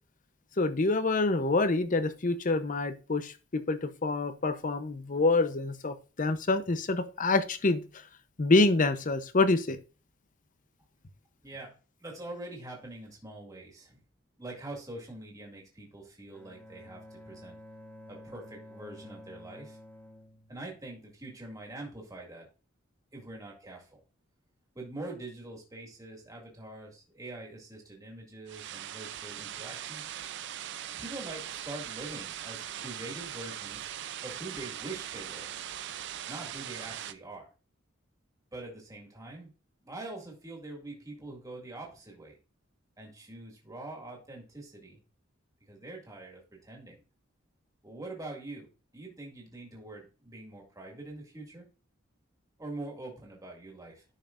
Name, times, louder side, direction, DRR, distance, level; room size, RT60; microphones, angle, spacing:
voice 1, 0.6-8.1 8.4-9.8, left 3 dB, 40° left, 11 dB, 0.7 m, -27 dB
voice 2, 11.4-14.0 14.4-17.6 18.1-19.8 20.5-22.5 23.1-24.0 24.8-30.1 31.0-33.9 34.2-35.5 36.3-37.5 38.5-39.5 39.8-42.4 43.0-45.0 45.7-47.0 47.8-48.7 48.9-51.7 52.6-54.0, right 2 dB, 15° right, -1 dB, 2.1 m, -44 dB
Bowed string instrument, 16.3-21.3, left 1 dB, 10° left, 1.2 m, -51 dB
sound 1, 28.5-37.1, right 11 dB, 60° right, 0.5 m, -40 dB
11.0 x 5.8 x 2.5 m, 0.33 s
head